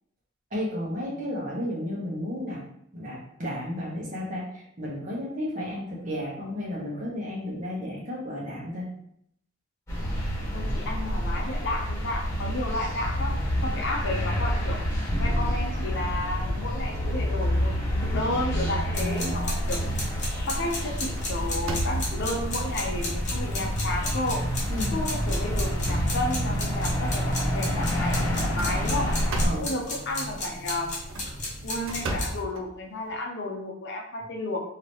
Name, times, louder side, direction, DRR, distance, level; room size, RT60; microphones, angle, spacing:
voice 1, 0.5-2.6 2.9-8.9 19.0-19.4 24.7-25.0 29.4-29.7, left 1 dB, 40° right, -5 dB, 1.1 m, -33 dB
sound 1, 9.9-29.5, equal, 15° left, 1.5 m, -28 dB
voice 2, 10.5-14.8 15.2-19.8 20.5-24.4 24.9-29.1 29.6-30.9 31.6-34.6, left 1 dB, 60° left, 1 dB, 0.6 m, -32 dB
sound 2, 18.9-32.4, left 1 dB, 35° left, 1.0 m, -35 dB
sound 3, 19.7-19.8 20.2-20.5 20.8-22.4 23.1-23.2 23.7-23.8 24.7-24.9 25.4-26.8 28.3-29.8 30.9-33.2, right 1 dB, 70° right, 0.5 m, -35 dB
2.9 x 2.8 x 3.0 m, 0.72 s
head